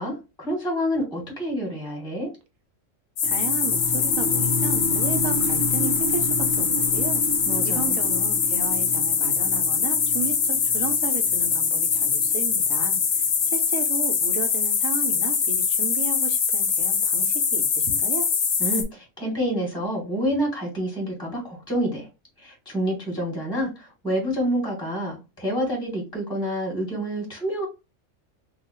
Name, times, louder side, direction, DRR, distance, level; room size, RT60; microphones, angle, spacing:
voice 1, 0.0-2.3 7.4-8.0 18.6-22.1 22.4-27.7, equal, 5° left, 1.5 m, -28 dB
sound 1, 3.2-18.8, left 6 dB, 80° left, 1.2 m, -23 dB
sound 2, 3.2-13.2, equal, 60° right, 0.8 m, -32 dB
voice 2, 3.2-7.2 7.6-18.3, right 5 dB, 90° right, 1.2 m, -34 dB
2.9 x 2.4 x 4.2 m
omnidirectional pair, 1.4 m